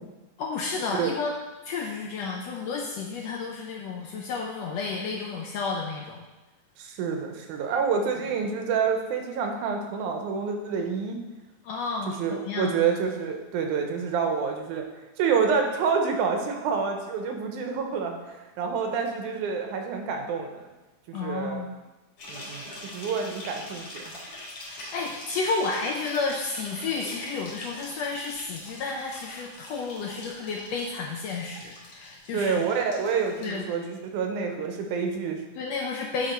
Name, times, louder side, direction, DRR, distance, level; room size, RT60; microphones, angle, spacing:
voice 1, 0.4-1.3 1.7-6.2 11.6-12.7 21.1-21.7 24.7-32.6 33.4-33.6 35.6-36.3, left 4 dB, 75° left, 0 dB, 1.5 m, -31 dB
voice 2, 6.8-11.2 12.2-14.9 15.2-20.7 21.1-21.6 22.3-24.1 32.3-35.4, right 6 dB, 85° right, 4 dB, 2.2 m, -28 dB
sound 1, 22.2-33.6, left 1 dB, 55° left, 2.3 m, -43 dB
9.3 x 3.7 x 4.2 m, 1.1 s
omnidirectional pair, 3.5 m